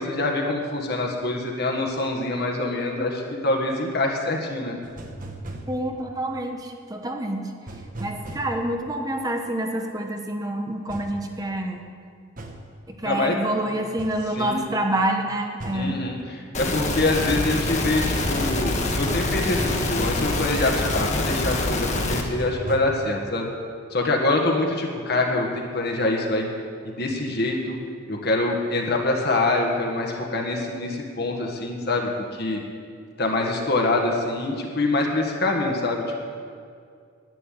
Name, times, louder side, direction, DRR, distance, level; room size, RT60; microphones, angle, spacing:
voice 1, 0.0-4.8 13.0-13.4 14.4-14.6 15.7-23.5 23.9-25.5 25.7-26.5 26.8-27.8 28.1-32.6 33.2-36.2, left 2 dB, 50° left, 1 dB, 1.6 m, -25 dB
sound 1, 4.8-5.7 7.7-8.5 10.9-11.1 12.4-12.6 14.0-14.2 15.6-15.9 18.0-20.4 22.1-22.8, right 2 dB, 40° right, 1.2 m, -36 dB
voice 2, 5.7-7.5 8.0-11.8 12.9-16.1, right 1 dB, 20° right, 3 dB, 1.0 m, -27 dB
sound 2, 16.5-22.2, left 2 dB, 35° left, 1.4 m, -25 dB
11.0 x 9.3 x 9.3 m, 2.2 s
head